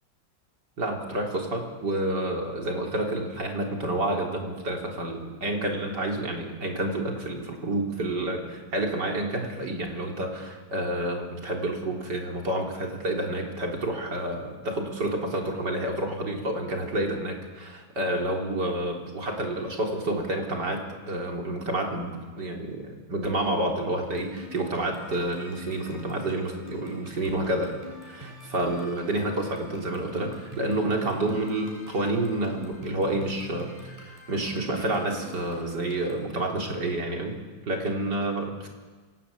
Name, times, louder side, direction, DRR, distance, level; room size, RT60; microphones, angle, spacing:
voice 1, 0.8-20.8 21.1-27.7 28.0-37.3 37.7-38.7, right 1 dB, 65° right, 1 dB, 4.3 m, -29 dB
sound 1, 24.0-36.3, left 1 dB, 20° right, 7.1 m, -45 dB
25.5 x 18.0 x 8.7 m, 1.4 s
omnidirectional pair, 2.0 m